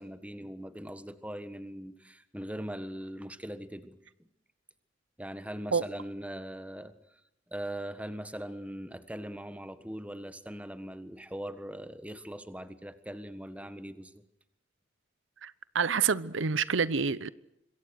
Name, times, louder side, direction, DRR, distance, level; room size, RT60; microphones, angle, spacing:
voice 1, 0.0-4.3 5.2-7.0 7.5-14.1, equal, 5° right, 1.5 m, -41 dB
voice 2, 15.4-17.3, right 5 dB, 90° right, 0.8 m, -28 dB
26.0 x 22.5 x 6.5 m
head